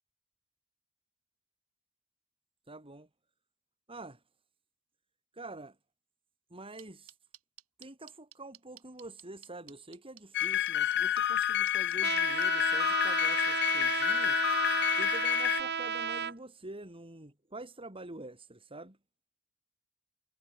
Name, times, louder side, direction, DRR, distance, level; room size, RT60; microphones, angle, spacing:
voice 1, 2.7-3.1 3.9-4.2 5.3-5.8 6.5-7.1 7.8-19.0, right 2 dB, 25° right, 4.0 m, -47 dB
sound 1, 6.8-12.5, right 13 dB, 70° right, 5.5 m, -52 dB
sound 2, 10.3-15.6, left 11 dB, 50° left, 0.8 m, -29 dB
Trumpet, 12.0-16.3, right 7 dB, 50° right, 4.6 m, -33 dB
head